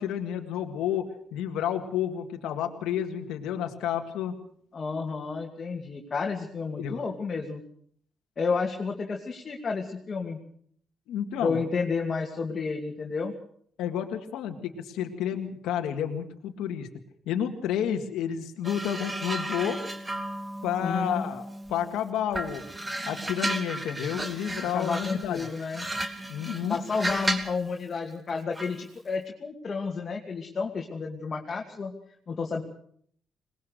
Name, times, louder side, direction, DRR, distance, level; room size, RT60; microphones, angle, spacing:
voice 1, 0.0-4.4 6.8-7.0 11.1-11.6 13.8-16.9 17.3-19.8 20.6-21.4 21.7-22.6 23.1-25.4 26.3-26.8, left 9 dB, 90° left, 4 dB, 1.9 m, -30 dB
voice 2, 4.7-7.6 8.4-10.4 11.4-13.3 20.8-21.2 24.7-25.9 26.7-31.9 32.3-32.6, left 4 dB, 40° left, 0 dB, 2.6 m, -31 dB
sound 1, 18.6-21.9 22.3-27.6 28.6-28.8, right 1 dB, 15° right, 2.5 m, -34 dB
21.5 x 19.5 x 6.5 m, 0.62 s
cardioid pair, 90°, 0 cm